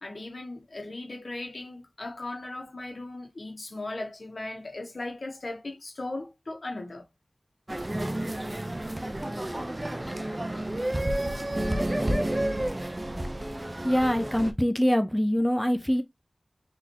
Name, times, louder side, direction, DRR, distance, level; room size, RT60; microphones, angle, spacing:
voice 1, 0.0-7.0, left 2 dB, 75° left, 1.6 m, -37 dB
sound 1, 7.7-14.5, right 1 dB, 30° right, 0.8 m, -30 dB
voice 2, 13.8-16.0, equal, 5° left, 0.7 m, -24 dB
4.1 x 3.7 x 2.8 m
wide cardioid pair, 50°, 0 cm